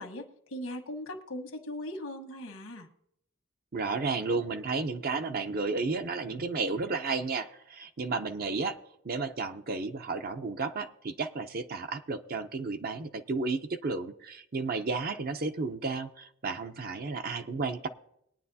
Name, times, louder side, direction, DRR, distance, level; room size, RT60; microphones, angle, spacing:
voice 1, 0.0-2.9, left 1 dB, 85° left, 4 dB, 1.5 m, -39 dB
voice 2, 3.7-8.8 9.0-17.9, right 4 dB, 45° right, 8 dB, 0.6 m, -32 dB
21.0 x 9.4 x 2.8 m, 0.76 s
head